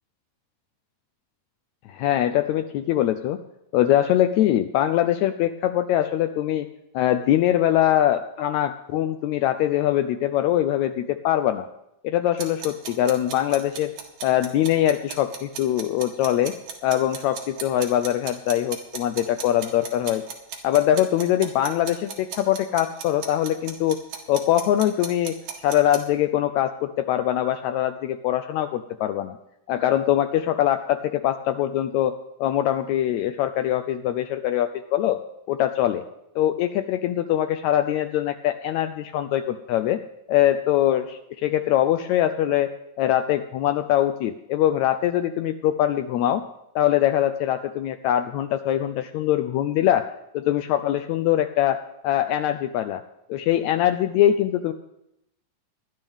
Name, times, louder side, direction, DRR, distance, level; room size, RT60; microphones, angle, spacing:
voice 1, 1.9-3.4 3.7-6.7 6.9-11.7 12.0-13.9 14.2-16.5 16.8-20.2 20.6-24.0 24.3-25.3 25.6-29.4 29.7-32.1 32.4-35.2 35.5-36.0 36.3-40.0 40.3-42.7 43.0-46.4 46.7-50.1 50.3-51.8 52.0-53.0 53.3-54.7, left 12 dB, 90° left, 8 dB, 1.6 m, -22 dB
sound 1, 12.4-26.0, right 7 dB, 65° right, 3.0 m, -36 dB
20.0 x 11.0 x 3.5 m, 0.85 s
omnidirectional pair, 3.8 m